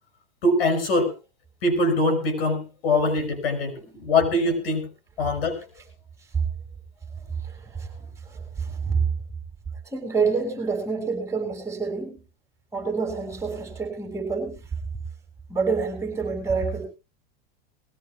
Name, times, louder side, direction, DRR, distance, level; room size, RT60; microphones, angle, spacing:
voice 1, 0.4-1.1 1.6-4.9 5.2-5.6, left 2 dB, 85° left, 7 dB, 5.0 m, -23 dB
voice 2, 7.4-9.0 9.9-12.2 12.7-14.6 15.5-16.8, right 5 dB, 10° right, 4 dB, 6.1 m, -28 dB
21.5 x 16.5 x 2.4 m, 0.29 s
supercardioid pair, 130°, 29 cm